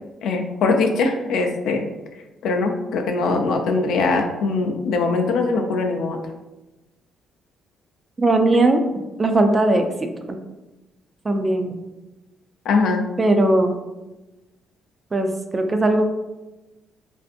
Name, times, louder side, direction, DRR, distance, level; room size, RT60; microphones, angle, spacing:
voice 1, 0.2-1.8 2.4-6.2 12.7-13.0, left 3 dB, 75° left, 4 dB, 0.4 m, -21 dB
voice 2, 8.2-8.8 9.2-9.9 10.3-10.4 11.2-11.7 13.2-13.8 15.1-16.1, right 2 dB, 25° right, 6 dB, 0.3 m, -18 dB
2.5 x 2.5 x 2.4 m, 1.1 s
cardioid pair, 95°, 0 cm